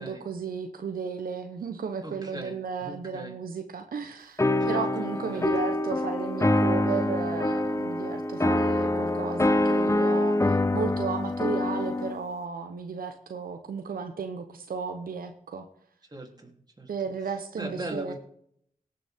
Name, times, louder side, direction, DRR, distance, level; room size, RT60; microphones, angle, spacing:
voice 1, 0.0-15.7 16.9-18.1, right 5 dB, 85° right, 6 dB, 0.9 m, -34 dB
voice 2, 2.0-3.4 4.6-5.5 16.0-16.9 17.6-18.1, right 1 dB, 30° right, 1 dB, 3.2 m, -40 dB
sound 1, 4.4-12.2, left 1 dB, 20° left, 0.8 m, -25 dB
17.5 x 6.9 x 3.6 m, 0.68 s
cardioid pair, 50°, 15 cm